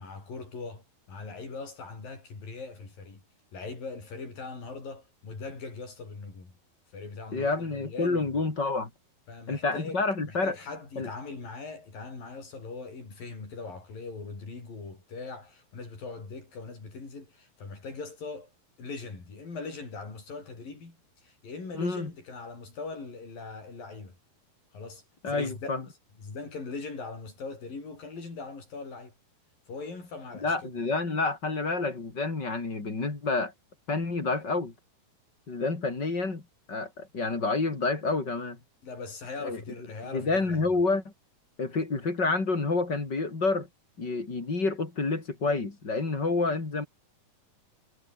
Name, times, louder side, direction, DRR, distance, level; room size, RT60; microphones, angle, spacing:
voice 1, 0.0-3.2 3.5-6.5 6.9-8.5 9.3-18.5 18.8-24.2 24.7-25.9 26.2-29.1 29.7-30.7 38.8-40.7, left 4 dB, 65° left, 9.6 m, -41 dB
voice 2, 7.3-8.9 9.5-10.6 11.0-11.1 21.7-22.1 25.2-25.8 30.4-33.5 33.9-34.7 35.5-36.4 36.7-38.6 39.4-39.6 40.0-41.1 41.6-43.7 44.0-46.9, left 3 dB, 30° left, 4.3 m, -28 dB
omnidirectional pair, 4.3 m